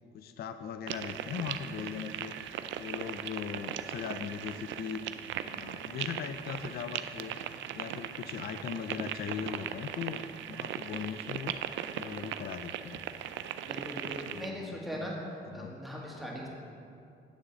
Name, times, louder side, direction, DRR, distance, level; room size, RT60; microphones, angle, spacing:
voice 1, 0.1-5.0 5.5-7.4 7.7-10.2 10.5-11.6 11.9-13.0 14.3-15.1 15.6-15.7, left 7 dB, 50° left, 9 dB, 0.4 m, -39 dB
sound 1, 0.9-14.5, right 10 dB, 75° right, 0.4 m, -39 dB
voice 2, 13.7-15.2 15.5-16.5, equal, ahead, -4 dB, 1.9 m, -40 dB
9.7 x 3.7 x 7.2 m, 2.5 s
cardioid pair, 90°, 20 cm